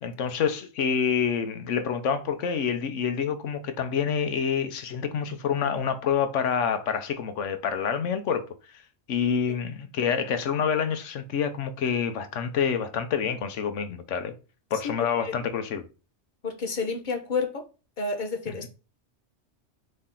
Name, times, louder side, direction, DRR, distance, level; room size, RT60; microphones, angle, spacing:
voice 1, 0.0-8.5 9.1-14.3 14.7-15.8, left 7 dB, 85° left, 1.1 m, -27 dB
voice 2, 16.4-17.7 18.0-18.7, left 4 dB, 45° left, 1.1 m, -30 dB
4.2 x 3.3 x 3.7 m
omnidirectional pair, 1.2 m